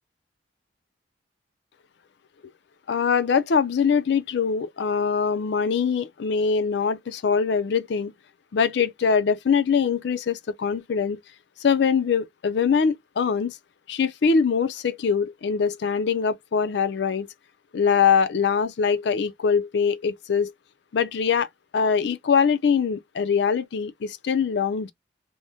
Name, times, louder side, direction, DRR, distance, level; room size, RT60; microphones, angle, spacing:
voice 1, 2.9-8.1 8.5-11.2 11.6-13.6 13.9-17.3 17.7-20.5 20.9-21.5 21.7-24.9, left 6 dB, 60° left, 0.4 m, -23 dB
2.6 x 2.1 x 3.4 m
head